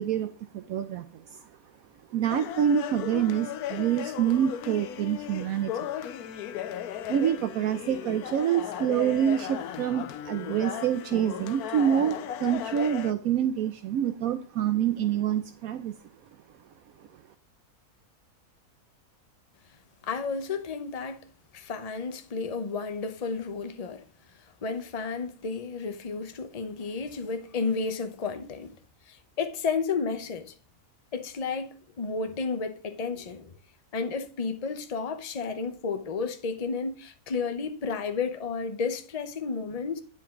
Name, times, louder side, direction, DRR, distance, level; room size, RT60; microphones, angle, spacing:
voice 1, 0.0-1.5 2.1-5.9 7.1-15.9, right 9 dB, 75° right, 1.1 m, -27 dB
sound 1, 2.3-13.1, left 10 dB, 80° left, 1.2 m, -36 dB
voice 2, 20.0-21.3 21.5-24.0 24.6-28.7 29.1-30.5 31.1-33.6 33.9-40.0, left 4 dB, 30° left, 0.8 m, -32 dB
9.7 x 7.8 x 3.7 m
omnidirectional pair, 1.6 m